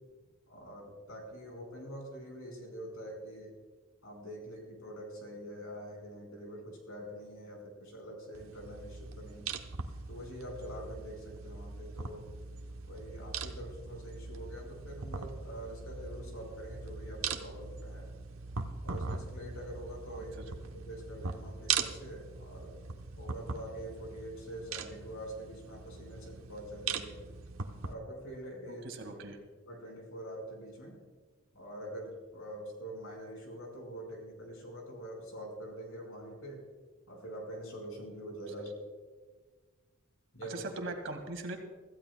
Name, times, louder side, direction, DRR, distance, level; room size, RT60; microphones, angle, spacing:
voice 1, 0.5-3.5 4.0-9.5 10.1-12.3 12.9-18.1 18.8-22.7 23.2-27.2 27.8-28.9 29.6-31.0 31.5-36.6 37.1-38.8 40.3-40.6, equal, 80° left, 1 dB, 5.0 m, -45 dB
sound 1, 8.4-27.9, right 5 dB, 85° right, 1.0 m, -40 dB
voice 2, 28.8-29.4 40.5-41.6, right 2 dB, 65° right, 4 dB, 2.1 m, -40 dB
25.5 x 15.0 x 2.3 m, 1.4 s
head